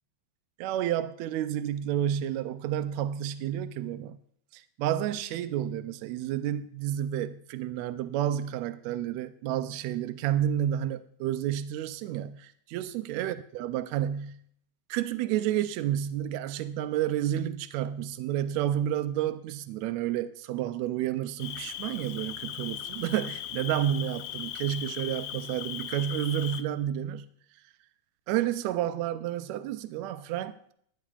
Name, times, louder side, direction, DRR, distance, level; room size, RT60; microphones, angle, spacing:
voice 1, 0.6-4.2 4.5-14.4 14.9-27.3 28.3-30.7, right 11 dB, 80° right, 1.6 m, -30 dB
Cricket, 21.4-26.6, left 12 dB, 80° left, 2.1 m, -38 dB
20.5 x 10.5 x 2.4 m
omnidirectional pair, 3.8 m